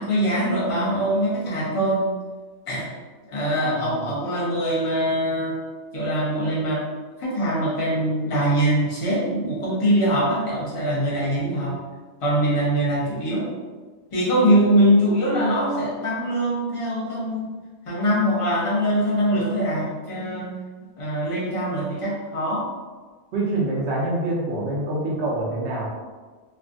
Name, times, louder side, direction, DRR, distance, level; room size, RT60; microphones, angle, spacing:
voice 1, 0.0-2.1 2.7-2.9 3.3-5.6 5.9-6.8 7.2-11.8 12.2-13.5 14.1-17.5 17.9-20.5 21.0-22.7, equal, 30° left, -6 dB, 0.8 m, -22 dB
voice 2, 3.5-4.1 23.3-25.9, right 2 dB, 65° right, -4 dB, 1.1 m, -26 dB
3.3 x 2.3 x 2.5 m, 1.4 s
omnidirectional pair, 1.3 m